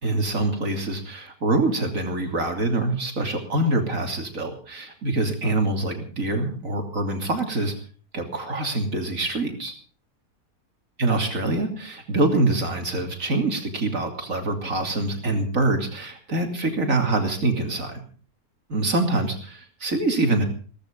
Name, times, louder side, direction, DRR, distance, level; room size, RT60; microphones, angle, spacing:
voice 1, 0.0-7.7 8.1-9.7 11.0-18.0 18.7-20.5, right 2 dB, 55° right, 4 dB, 3.3 m, -25 dB
17.0 x 15.0 x 5.2 m, 0.40 s
omnidirectional pair, 1.7 m